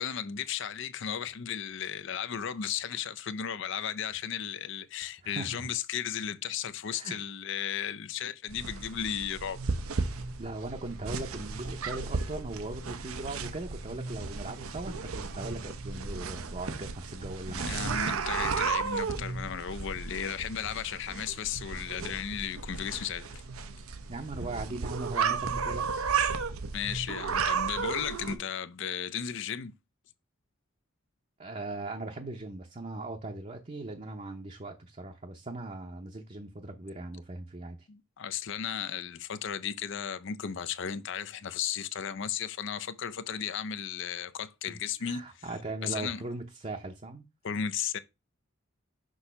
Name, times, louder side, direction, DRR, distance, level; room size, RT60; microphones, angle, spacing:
voice 1, 0.0-9.6 17.4-23.3 26.7-29.7 37.9-45.4 45.8-46.3 47.4-48.0, left 8 dB, 60° left, 0.5 m, -35 dB
voice 2, 5.2-5.7 6.9-7.2 10.4-17.8 19.1-19.2 24.1-26.1 31.4-37.9 44.7-44.8 45.0-47.2, right 2 dB, 30° right, 0.7 m, -39 dB
sound 1, 8.5-28.4, right 5 dB, 90° right, 0.7 m, -34 dB
6.2 x 2.7 x 5.6 m
head